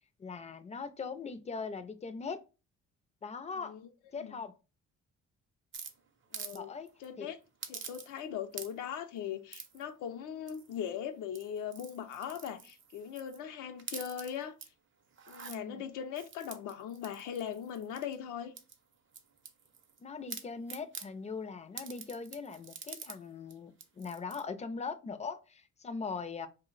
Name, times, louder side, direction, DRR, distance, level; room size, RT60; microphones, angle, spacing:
voice 1, 0.2-2.4 3.2-3.7 4.1-4.5 6.5-6.9 7.2-7.3 15.5-15.8 20.0-26.5, left 5 dB, 25° left, 0.3 m, -40 dB
sound 1, 5.7-6.6 6.9-7.1 7.6-8.3 8.5-9.0 9.5-9.8 10.5-10.9 11.3-13.4 13.8-14.7 15.1-15.6 16.2-18.2 18.6-20.0 20.3-21.1 21.8-23.2 23.5-23.6 23.8-24.4, right 6 dB, 40° right, 0.6 m, -46 dB
voice 2, 6.3-6.7 7.0-7.4 7.7-14.6 15.3-18.5, left 9 dB, 85° left, 0.5 m, -40 dB
2.5 x 2.1 x 3.8 m
cardioid pair, 90°, 30 cm